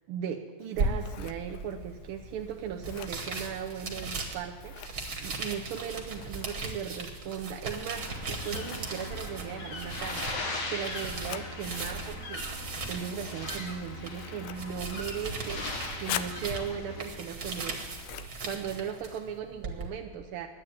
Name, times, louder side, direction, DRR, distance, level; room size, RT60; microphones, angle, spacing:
voice 1, 0.1-4.8 5.2-17.8 18.4-20.5, right 8 dB, 85° right, 2 dB, 1.6 m, -37 dB
Scissors, 0.6-19.4, left 11 dB, 75° left, 1.4 m, -46 dB
sound 1, 0.8-19.9, right 3 dB, 45° right, 1.9 m, -38 dB
sound 2, 7.9-17.0, left 2 dB, 55° left, 2.1 m, -39 dB
11.0 x 8.7 x 9.3 m, 1.4 s
omnidirectional pair, 2.4 m